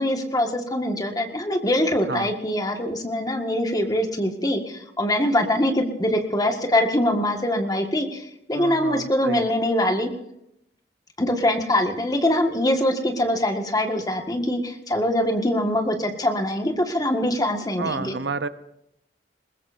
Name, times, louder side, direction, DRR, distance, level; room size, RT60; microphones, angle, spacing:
voice 1, 0.0-10.1 11.2-18.2, left 1 dB, 20° left, 4 dB, 1.8 m, -23 dB
voice 2, 8.5-9.5 17.8-18.5, right 4 dB, 85° right, 13 dB, 0.8 m, -30 dB
21.0 x 20.5 x 2.7 m, 0.81 s
head